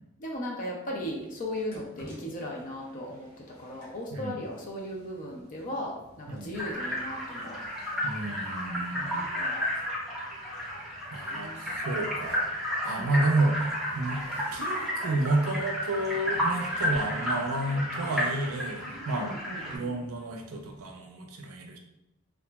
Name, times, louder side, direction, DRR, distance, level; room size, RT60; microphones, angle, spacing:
voice 1, 0.2-3.3 3.6-7.6 9.2-9.6 11.3-11.6 12.9-13.1 19.2-19.9, left 1 dB, 40° left, -1 dB, 0.5 m, -37 dB
sound 1, 1.1-20.9, equal, 75° left, 1.1 m, -53 dB
sound 2, 6.5-19.8, equal, ahead, 0.6 m, -32 dB
voice 2, 8.0-9.3 11.1-12.4 12.8-14.2 14.5-19.3 19.7-21.8, right 2 dB, 80° right, 3 dB, 0.5 m, -30 dB
2.8 x 2.4 x 2.3 m, 0.87 s
head